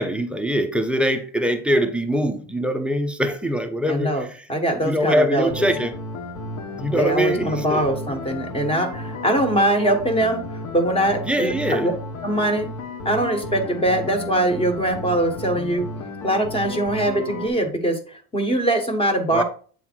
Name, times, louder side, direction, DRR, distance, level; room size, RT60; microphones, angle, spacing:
voice 1, 0.0-4.5 4.8-5.9 6.7-7.9 11.2-11.9 19.3-19.4, equal, 5° right, 0.6 m, -23 dB
voice 2, 3.9-5.7 6.9-10.4 10.7-11.9 12.2-12.7 13.0-15.8 16.2-19.4, right 1 dB, 15° left, 1.4 m, -22 dB
sound 1, 5.5-17.5, left 2 dB, 50° left, 1.5 m, -33 dB
8.4 x 3.8 x 4.5 m
cardioid pair, 165°, 38 cm